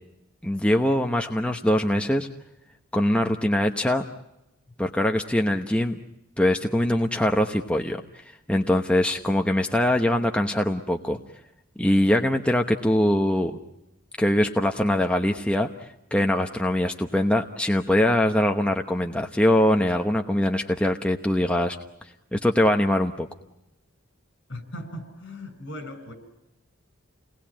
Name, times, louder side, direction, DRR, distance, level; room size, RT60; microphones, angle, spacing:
voice 1, 0.4-2.3 2.9-4.0 4.8-6.0 6.4-8.0 8.5-11.2 11.8-13.6 14.2-21.8 22.3-23.3, left 1 dB, 5° left, 3 dB, 1.0 m, -22 dB
voice 2, 24.5-26.1, left 1 dB, 60° left, 8 dB, 6.9 m, -38 dB
29.5 x 20.0 x 8.8 m, 0.90 s
head